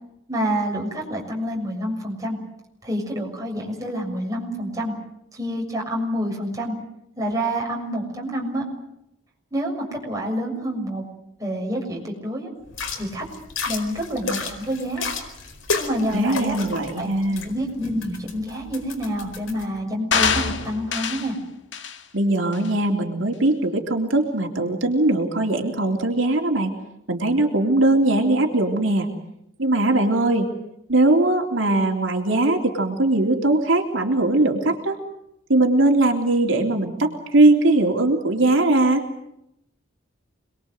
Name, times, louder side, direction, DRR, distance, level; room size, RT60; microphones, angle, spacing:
voice 1, 0.3-2.4 2.8-4.9 5.3-6.7 7.2-8.6 9.5-11.0 11.4-12.5 12.9-13.2 13.6-15.1 15.8-16.6 17.0-17.1 17.4-21.4, equal, 15° right, -1 dB, 6.8 m, -27 dB
sound 1, 12.7-19.6, left 4 dB, 90° left, 4.6 m, -32 dB
voice 2, 16.1-17.5 22.1-26.7 27.1-29.1 29.6-30.5 30.9-35.0 35.5-39.0, right 2 dB, 80° right, 2 dB, 3.4 m, -20 dB
sound 2, 20.1-21.3 21.7-22.0 22.5-22.7, left 6 dB, 65° left, 1.9 m, -24 dB
27.5 x 22.0 x 7.9 m, 0.81 s
head